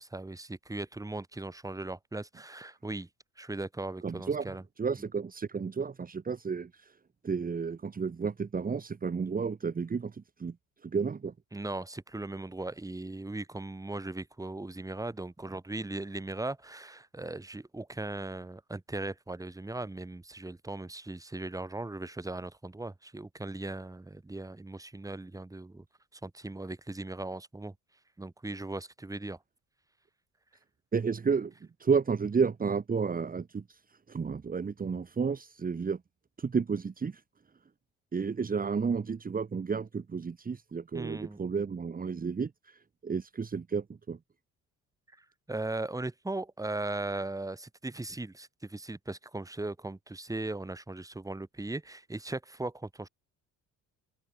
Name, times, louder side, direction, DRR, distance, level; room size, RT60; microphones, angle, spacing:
voice 1, 0.0-3.1 3.4-4.6 11.5-25.8 26.1-27.7 28.2-29.4 40.9-41.4 45.2-53.1, right 2 dB, 10° right, 3.3 m, -38 dB
voice 2, 4.0-7.0 7.2-10.6 10.8-11.3 30.9-31.5 31.8-33.8 34.1-36.0 36.4-37.2 38.1-44.2, right 5 dB, 30° right, 2.3 m, -32 dB
open air
cardioid pair, 95°, 30 cm